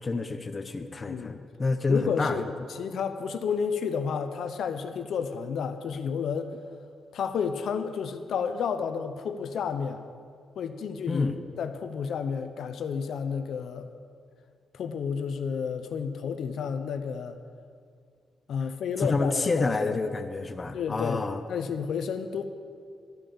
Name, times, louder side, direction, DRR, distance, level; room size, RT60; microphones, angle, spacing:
voice 1, 0.0-2.4 11.1-11.4 19.0-21.4, left 3 dB, 25° left, 7 dB, 0.7 m, -28 dB
voice 2, 1.1-1.5 1.9-6.5 7.1-10.0 10.6-13.9 14.7-17.4 18.5-19.9 20.7-22.4, left 6 dB, 75° left, 8 dB, 0.7 m, -31 dB
12.0 x 9.0 x 7.0 m, 2.2 s
cardioid pair, 125°, 0 cm